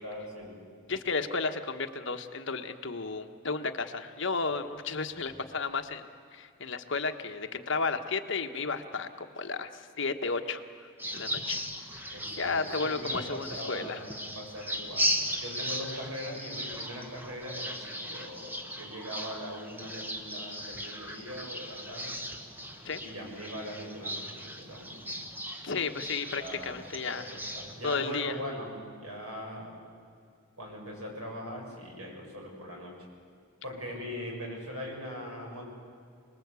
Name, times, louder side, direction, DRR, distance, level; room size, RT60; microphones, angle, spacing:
voice 1, 0.0-0.6 5.2-5.3 12.1-15.1 15.4-22.3 23.0-25.0 26.3-26.8 27.2-29.7 30.6-32.9 33.6-35.6, equal, 80° right, 0 dB, 7.5 m, -41 dB
voice 2, 0.9-6.1 6.3-10.6 11.1-11.6 12.0-14.0 22.8-23.0 25.6-27.3 27.8-28.4, left 4 dB, 55° left, 7 dB, 1.3 m, -33 dB
sound 1, 11.0-28.2, equal, 10° right, 1.3 m, -37 dB
27.5 x 20.0 x 8.3 m, 2.4 s
head